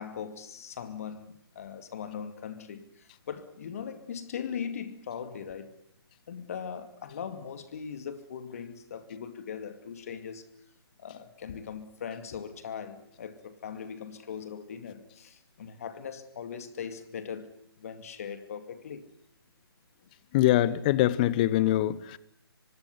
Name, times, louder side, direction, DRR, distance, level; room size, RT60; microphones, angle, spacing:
voice 1, 0.0-5.7 6.3-10.5 11.0-19.1, left 7 dB, 35° left, 2.4 m, -40 dB
voice 2, 20.3-22.2, left 14 dB, 20° left, 1.0 m, -23 dB
25.5 x 20.0 x 9.6 m
figure-of-eight pair, 145°, 13 cm